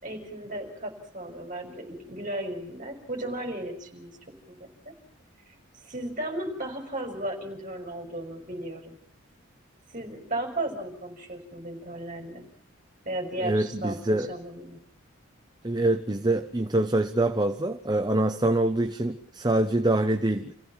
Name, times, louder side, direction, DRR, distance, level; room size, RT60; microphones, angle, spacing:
voice 1, 0.0-4.1 4.5-4.7 5.8-9.0 9.9-12.5 13.0-14.8, right 1 dB, 35° right, 5.8 m, -35 dB
voice 2, 13.4-14.3 15.6-20.5, right 1 dB, 20° right, 0.9 m, -25 dB
28.5 x 16.0 x 7.2 m
head